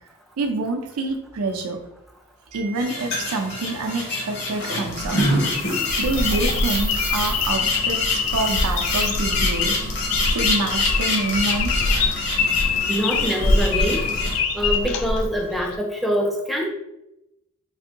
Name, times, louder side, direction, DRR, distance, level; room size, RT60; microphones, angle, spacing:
voice 1, 0.4-1.8 2.5-5.2 6.0-9.8 10.2-12.2, right 2 dB, 85° right, 4 dB, 0.5 m, -27 dB
sound 1, 2.8-14.4, left 2 dB, 50° left, 0.8 m, -27 dB
sound 2, 4.9-15.8, left 4 dB, 75° left, 0.3 m, -24 dB
sound 3, 5.5-7.5 8.2-9.1, right 6 dB, 45° right, 0.6 m, -36 dB
voice 2, 12.9-14.1 14.5-16.7, equal, ahead, 0 dB, 0.4 m, -24 dB
3.3 x 2.6 x 2.8 m, 0.86 s
head